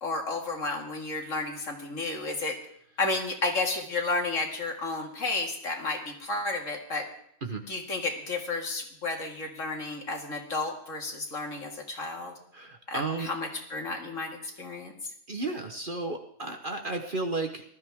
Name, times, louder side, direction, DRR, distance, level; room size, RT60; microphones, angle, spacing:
voice 1, 0.0-2.6 3.0-7.1 7.7-12.3 12.9-14.9, left 3 dB, 55° left, 2 dB, 2.5 m, -32 dB
voice 2, 12.5-13.3 15.3-17.6, right 3 dB, 40° right, 5 dB, 1.2 m, -33 dB
19.5 x 13.0 x 3.6 m, 0.69 s
omnidirectional pair, 1.6 m